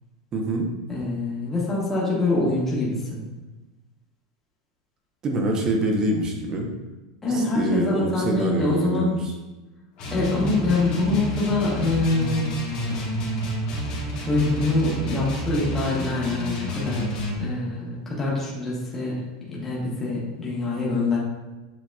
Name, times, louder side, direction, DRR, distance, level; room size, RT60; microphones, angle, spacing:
voice 1, 0.3-0.7 5.2-6.7 7.3-9.2, right 1 dB, 25° right, 2 dB, 0.7 m, -25 dB
voice 2, 0.9-3.3 7.2-9.2 10.1-12.5 14.2-19.2 19.5-21.2, left 2 dB, 10° left, -6 dB, 1.1 m, -25 dB
sound 1, 10.0-17.4, equal, 40° left, 1.3 m, -29 dB
7.4 x 2.8 x 2.3 m, 1.1 s
supercardioid pair, 160°, 3 cm